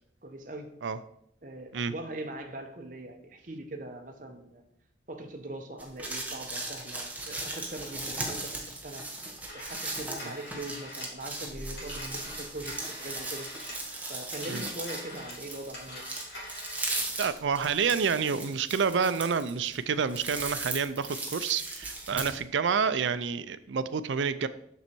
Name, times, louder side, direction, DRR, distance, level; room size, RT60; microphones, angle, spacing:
voice 1, 0.2-0.8 1.4-4.6 5.1-9.1 9.5-13.5 14.1-16.0 22.1-22.4, right 1 dB, 45° right, 5 dB, 1.0 m, -41 dB
sound 1, 5.8-22.4, right 2 dB, 10° right, 1.1 m, -37 dB
Telephone, 9.2-14.0 14.3-17.2, left 1 dB, 80° left, 3.0 m, -44 dB
voice 2, 17.2-24.5, right 6 dB, 85° right, 14 dB, 0.5 m, -28 dB
6.9 x 6.3 x 4.5 m, 0.74 s
head